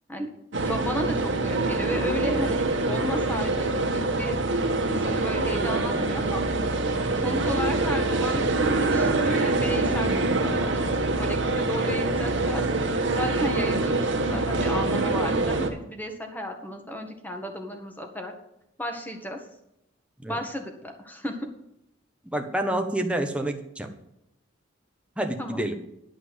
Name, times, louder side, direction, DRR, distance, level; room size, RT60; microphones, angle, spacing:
sound 1, 0.5-15.7, right 2 dB, 70° right, 1.6 m, -25 dB
voice 1, 0.6-4.4 4.8-6.4 7.2-8.4 8.8-12.6 13.1-18.3 18.8-19.4 20.3-21.5 25.4-25.6, equal, 10° left, 4 dB, 1.6 m, -33 dB
voice 2, 22.3-23.9 25.2-25.8, right 1 dB, 5° right, 4 dB, 1.2 m, -28 dB
11.5 x 5.9 x 8.1 m, 0.82 s
head